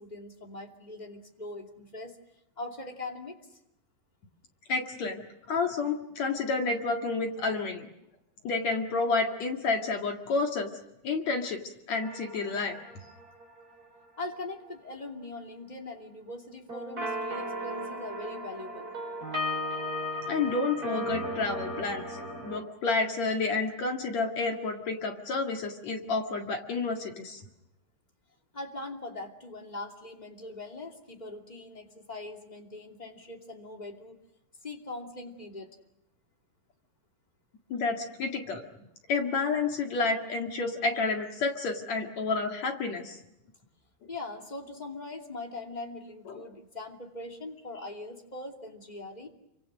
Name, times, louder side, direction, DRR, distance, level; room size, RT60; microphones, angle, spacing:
voice 1, 0.0-2.2 2.6-3.4 14.2-18.9 28.5-34.2 34.6-35.7 44.1-49.3, left 2 dB, 15° left, 2 dB, 1.9 m, -41 dB
voice 2, 4.7-5.2 5.5-7.9 8.4-10.7 11.0-11.6 11.9-12.8 20.3-27.4 37.7-38.6 39.1-43.2 46.3-46.4, left 3 dB, 50° left, 3 dB, 2.8 m, -30 dB
sound 1, 11.9-14.0 16.7-22.6, equal, 20° right, 5.0 m, -36 dB
28.5 x 25.5 x 6.3 m, 0.88 s
omnidirectional pair, 4.5 m